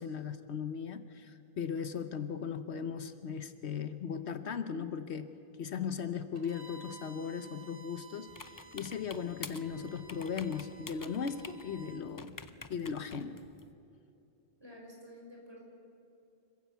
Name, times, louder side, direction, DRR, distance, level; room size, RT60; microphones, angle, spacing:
voice 1, 0.0-5.3 5.6-12.4 12.7-13.4, left 6 dB, 75° left, 11 dB, 1.1 m, -38 dB
Bowed string instrument, 6.3-12.0, right 3 dB, 50° right, 2.1 m, -55 dB
sound 1, 8.3-13.7, left 3 dB, 25° left, 0.5 m, -49 dB
voice 2, 14.6-15.6, equal, 20° right, -2 dB, 5.7 m, -50 dB
26.0 x 15.0 x 8.2 m, 2.8 s
omnidirectional pair, 1.1 m